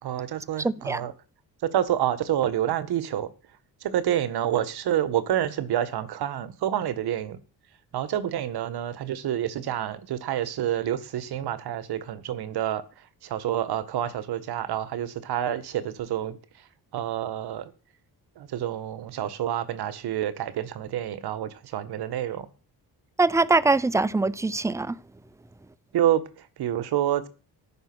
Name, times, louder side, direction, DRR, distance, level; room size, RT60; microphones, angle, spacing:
voice 1, 0.0-1.1 1.6-3.3 3.8-7.4 7.9-12.8 13.2-16.4 16.9-17.7 18.4-22.5 25.9-27.3, right 11 dB, 85° right, 1.7 m, -28 dB
voice 2, 0.6-1.0 23.2-25.0, right 3 dB, 10° right, 0.6 m, -23 dB
14.0 x 11.0 x 6.2 m
cardioid pair, 120°, 38 cm